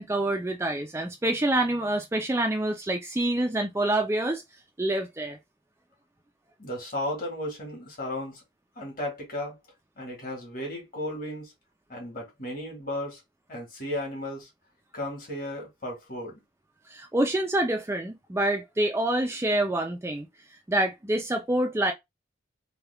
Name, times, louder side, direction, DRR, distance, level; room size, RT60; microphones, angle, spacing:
voice 1, 0.0-4.4 4.8-5.4 16.9-20.3 20.7-21.9, right 1 dB, 15° right, 0.4 m, -26 dB
voice 2, 6.6-8.4 8.7-9.6 10.0-11.5 11.9-13.2 13.5-14.5 14.9-16.3, left 1 dB, 45° left, 1.7 m, -34 dB
3.4 x 2.3 x 3.3 m
head